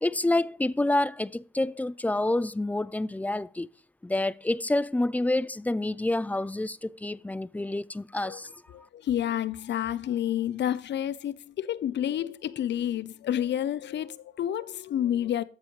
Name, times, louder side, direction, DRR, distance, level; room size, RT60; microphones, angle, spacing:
voice 1, 0.0-3.7 4.0-8.5, left 2 dB, 10° left, 0.5 m, -28 dB
voice 2, 8.7-15.4, left 10 dB, 60° left, 0.8 m, -29 dB
13.5 x 7.6 x 3.3 m
cardioid pair, 90°, 20 cm